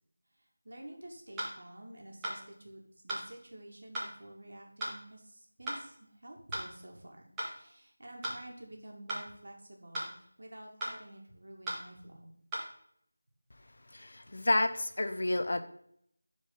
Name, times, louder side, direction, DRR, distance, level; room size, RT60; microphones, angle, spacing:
voice 1, 0.3-12.3, right 1 dB, 65° right, 0 dB, 2.2 m, -50 dB
sound 1, 1.4-1.5 2.2-2.4 3.1-3.3 3.9-4.1 4.8-5.0 5.7-5.8 6.5-6.7 7.4-7.5 8.2-8.4 9.1-9.3 9.9-10.1 10.8-11.0 11.7-11.8 12.5-12.7, equal, 5° right, 1.8 m, -36 dB
voice 2, 13.9-15.6, left 2 dB, 55° left, 9 dB, 0.8 m, -30 dB
11.0 x 4.8 x 4.0 m, 0.68 s
figure-of-eight pair, 170°, 0 cm